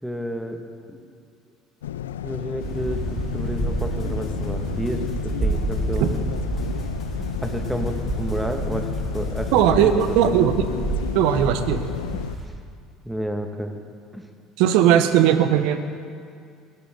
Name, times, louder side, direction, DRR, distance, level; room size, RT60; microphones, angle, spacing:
voice 1, 0.0-0.6 0.9-1.0 2.2-6.2 7.2-10.5 12.1-12.2 12.5-12.6 13.0-13.8 14.1-14.3, equal, 5° right, 4 dB, 1.9 m, -31 dB
sound 1, 1.8-12.4, left 11 dB, 85° left, 0.3 m, -32 dB
sound 2, 2.6-12.5, right 2 dB, 30° right, 3.8 m, -29 dB
sound 3, 3.6-10.4, equal, 40° left, 3.9 m, -47 dB
voice 2, 9.5-10.6 11.1-11.8 14.6-15.8, right 10 dB, 70° right, 10 dB, 1.0 m, -18 dB
19.0 x 15.0 x 3.9 m, 2.3 s
hypercardioid pair, 70°, 0 cm